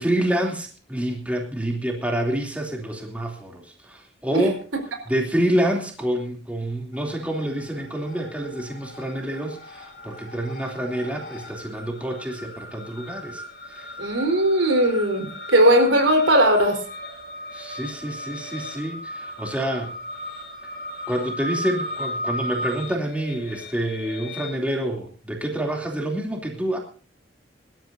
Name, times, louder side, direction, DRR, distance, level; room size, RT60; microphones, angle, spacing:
voice 1, 0.0-4.6 5.1-13.4 13.7-13.9 17.5-19.9 21.1-26.8, right 1 dB, 5° right, 0 dB, 3.0 m, -27 dB
sound 1, 7.0-7.6 7.9-24.5, left 1 dB, 55° left, 3.9 m, -36 dB
voice 2, 14.0-16.8, right 1 dB, 85° right, 4 dB, 4.3 m, -18 dB
24.5 x 12.5 x 2.7 m, 0.39 s
head